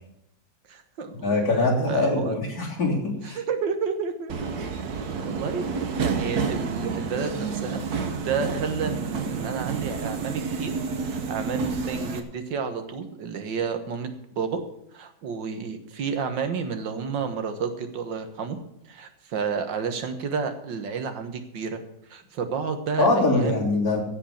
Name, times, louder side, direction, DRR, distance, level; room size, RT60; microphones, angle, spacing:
voice 1, 0.7-1.3 1.9-2.4 3.2-4.3 5.2-7.8 8.2-10.7 11.0-14.1 14.4-14.6 14.9-18.6 18.9-21.8 22.1-23.7, right 5 dB, 80° right, 8 dB, 2.0 m, -30 dB
voice 2, 1.2-3.0 3.2-3.4 23.0-24.0, left 2 dB, 55° left, -3 dB, 3.7 m, -22 dB
Subway metro underground, 4.3-12.2, right 5 dB, 60° right, 1.6 m, -29 dB
16.0 x 5.4 x 8.5 m, 0.78 s
omnidirectional pair, 1.9 m